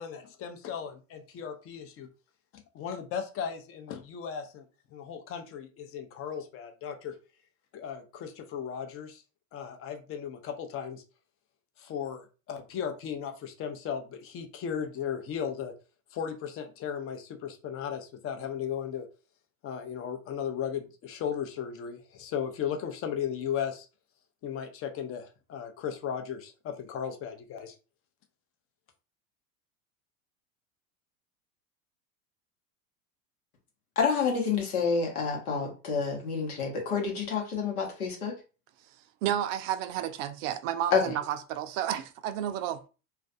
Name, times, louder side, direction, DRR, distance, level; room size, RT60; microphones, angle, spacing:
voice 1, 0.0-2.1 2.7-7.1 7.7-9.2 9.5-11.0 11.8-15.7 16.1-19.1 19.6-23.9 24.4-27.7, left 8 dB, 35° left, 0.5 m, -36 dB
voice 2, 34.0-38.3 40.9-41.0, left 5 dB, 90° left, 1.0 m, -28 dB
voice 3, 39.2-42.8, right 11 dB, 60° right, 0.5 m, -31 dB
2.4 x 2.2 x 2.5 m
hypercardioid pair, 90°, 43 cm